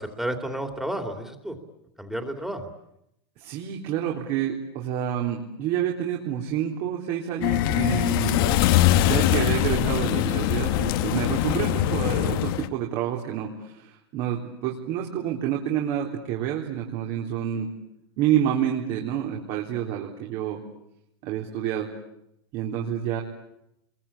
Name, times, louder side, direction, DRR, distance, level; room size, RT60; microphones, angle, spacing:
voice 1, 0.0-1.6 2.0-2.7, right 1 dB, 5° right, 5 dB, 2.9 m, -31 dB
voice 2, 3.4-8.6 9.0-17.7 18.2-20.6 21.2-21.9 22.5-23.2, right 10 dB, 50° right, 0 dB, 3.7 m, -28 dB
sound 1, 7.4-12.7, left 13 dB, 65° left, 1.4 m, -22 dB
29.5 x 22.5 x 8.5 m, 0.82 s
supercardioid pair, 130°, 13 cm